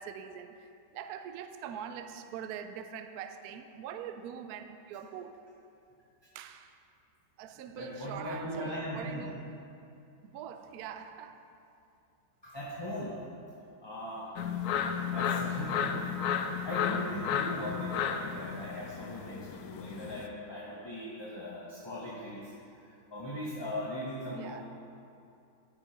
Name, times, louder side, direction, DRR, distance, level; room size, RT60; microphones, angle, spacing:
voice 1, 0.0-5.5 6.3-6.8 7.4-9.5 10.2-11.5 24.3-24.6, right 8 dB, 70° right, 0.9 m, -43 dB
voice 2, 7.7-9.3 12.4-13.1 13.8-14.3 15.0-24.6, left 1 dB, 20° left, 0.9 m, -39 dB
sound 1, 14.4-20.3, left 7 dB, 70° left, 1.0 m, -33 dB
10.5 x 7.4 x 5.0 m
omnidirectional pair, 1.9 m